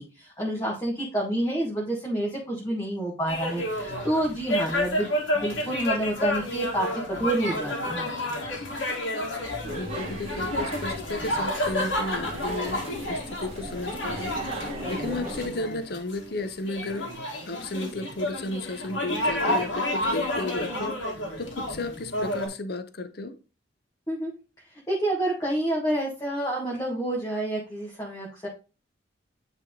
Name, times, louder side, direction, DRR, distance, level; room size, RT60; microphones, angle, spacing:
voice 1, 0.0-5.0 5.3-8.0 24.1-24.3 24.9-28.5, right 1 dB, 20° left, 1.5 m, -28 dB
sound 1, 3.3-22.5, left 1 dB, 80° left, 1.9 m, -30 dB
sound 2, 9.6-15.5, right 1 dB, 30° right, 1.5 m, -37 dB
voice 2, 9.8-14.4 14.9-17.1 17.5-21.0 21.4-23.4, left 2 dB, 55° left, 0.7 m, -33 dB
9.4 x 3.5 x 3.7 m
head